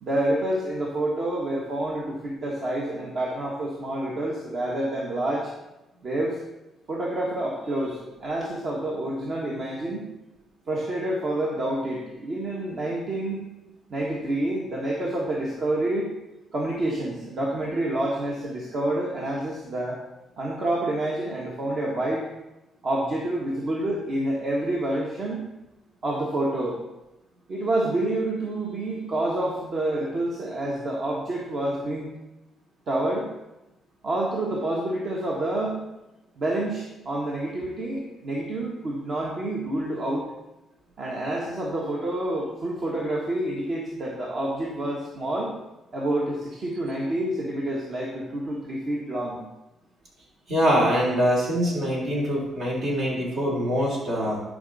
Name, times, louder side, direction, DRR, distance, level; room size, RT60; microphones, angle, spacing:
voice 1, 0.0-5.5 6.0-6.4 6.9-10.1 10.7-13.5 13.9-16.1 16.5-20.0 20.4-22.2 22.8-25.4 26.0-26.8 27.5-32.1 32.9-33.3 34.0-35.8 36.4-40.3 41.0-45.5 45.9-49.4, right 1 dB, 50° right, -3 dB, 1.5 m, -28 dB
voice 2, 50.5-54.4, equal, 70° right, -3 dB, 3.2 m, -24 dB
11.0 x 5.1 x 4.1 m, 0.96 s
cardioid pair, 90°, 0 cm